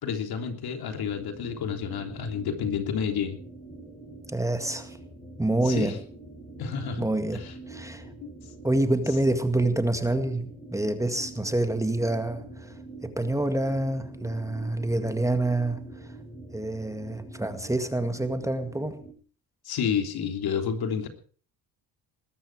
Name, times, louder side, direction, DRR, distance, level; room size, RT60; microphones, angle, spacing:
voice 1, 0.0-3.4 5.6-6.0 6.6-7.5 8.2-8.3 19.6-21.1, left 7 dB, 65° left, 6 dB, 3.4 m, -30 dB
sound 1, 0.9-19.1, right 2 dB, 15° left, 7.3 m, -45 dB
voice 2, 4.3-5.0 5.4-5.9 7.0-8.1 8.6-12.7 13.0-15.9 16.5-19.0, right 2 dB, 10° right, 8 dB, 2.0 m, -27 dB
20.5 x 13.5 x 4.8 m, 0.42 s
cardioid pair, 105°, 40 cm